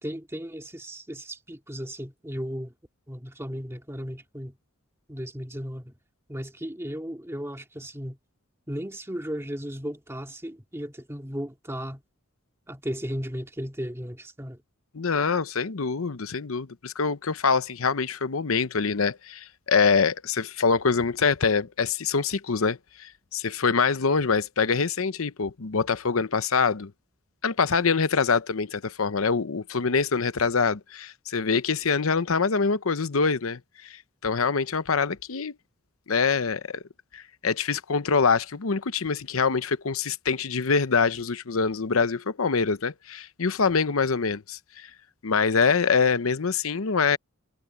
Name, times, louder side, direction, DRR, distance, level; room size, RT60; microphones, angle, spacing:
voice 1, 0.0-2.7 3.1-4.5 5.1-5.9 6.3-8.2 8.7-12.0 12.7-14.6, equal, 15° right, 2.2 m, -35 dB
voice 2, 14.9-26.9 27.4-35.5 36.1-36.8 37.1-44.9 45.2-47.2, left 5 dB, 80° left, 0.8 m, -25 dB
head